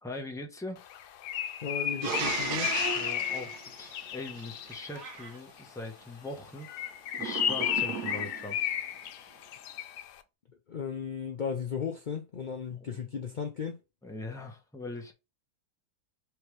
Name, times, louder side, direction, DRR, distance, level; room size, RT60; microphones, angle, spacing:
voice 1, 0.0-0.8 2.9-6.7 7.2-8.6 14.0-15.1, left 2 dB, 5° left, 0.6 m, -41 dB
Bird, 0.9-5.0 6.6-10.1, left 10 dB, 90° left, 1.2 m, -33 dB
voice 2, 1.6-2.7 10.7-13.8, left 6 dB, 65° left, 0.4 m, -35 dB
sound 1, 2.0-4.7 7.1-8.6, right 5 dB, 80° right, 1.3 m, -35 dB
sound 2, 4.9-5.4, right 3 dB, 45° right, 1.4 m, -47 dB
3.5 x 3.1 x 4.6 m
omnidirectional pair, 1.7 m